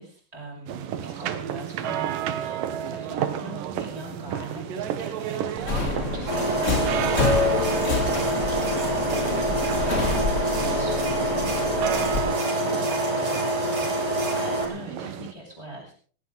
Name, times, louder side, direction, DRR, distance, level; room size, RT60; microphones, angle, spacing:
voice 1, 0.0-9.0 9.9-15.9, right 1 dB, 10° right, -5 dB, 7.1 m, -42 dB
sound 1, 0.7-15.3, right 9 dB, 65° right, 2.7 m, -32 dB
Subway metro underground, 5.6-12.2, left 3 dB, 20° left, 2.4 m, -27 dB
sound 2, 6.3-14.7, right 1 dB, 40° right, 5.6 m, -26 dB
18.5 x 18.0 x 4.0 m, 0.42 s
omnidirectional pair, 4.5 m